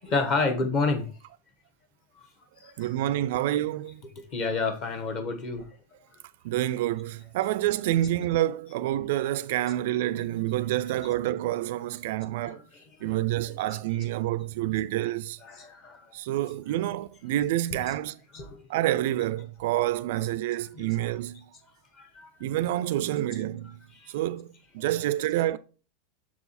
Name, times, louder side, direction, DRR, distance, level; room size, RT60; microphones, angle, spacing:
voice 1, 0.0-1.1 2.2-2.3 2.6-2.9 4.0-5.7 7.8-8.1 9.7-9.8 11.0-11.2 12.4-14.1 15.4-16.1 16.8-16.9 17.7-18.0 18.3-18.8 20.2-20.3 20.7-21.2 21.9-22.3 22.6-22.8 23.9-24.1 24.8-25.5, left 3 dB, 30° left, 1.2 m, -32 dB
voice 2, 2.8-4.0 6.4-12.6 13.0-15.4 16.1-18.2 18.7-21.5 22.4-23.8 24.1-25.6, right 14 dB, 55° right, 0.3 m, -28 dB
7.1 x 4.6 x 4.2 m
supercardioid pair, 180°, 0 cm